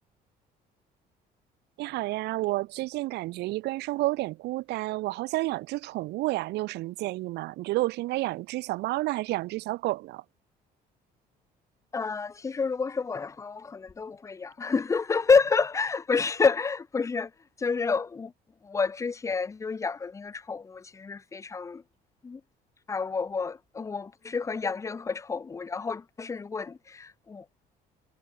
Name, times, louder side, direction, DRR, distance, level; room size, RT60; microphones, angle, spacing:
voice 1, 1.8-10.2, right 19 dB, 85° right, 1.5 m, -30 dB
voice 2, 11.9-17.3 17.6-18.3 18.6-21.8 22.2-22.4 22.9-27.5, left 5 dB, 20° left, 0.5 m, -29 dB
cardioid pair, 110°, 17 cm